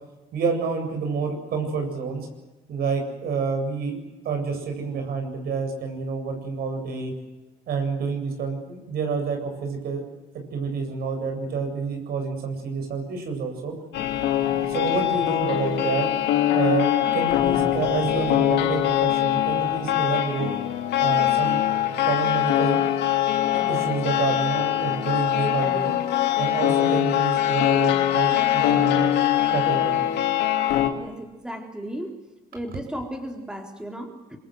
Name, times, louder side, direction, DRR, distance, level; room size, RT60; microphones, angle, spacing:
voice 1, 0.3-2.3 2.7-4.0 4.2-7.1 7.7-10.0 10.5-13.7 14.6-16.1 16.5-20.5 21.0-21.6 22.0-22.8 23.5-25.9 26.4-29.2 29.5-30.0, right 5 dB, 65° right, 5 dB, 8.0 m, -28 dB
sound 1, 13.9-30.9, left 12 dB, 85° left, 2.8 m, -22 dB
voice 2, 31.0-32.2 32.5-34.4, equal, 5° right, 3 dB, 4.0 m, -35 dB
26.0 x 23.0 x 8.1 m, 1.1 s
cardioid pair, 110°, 17 cm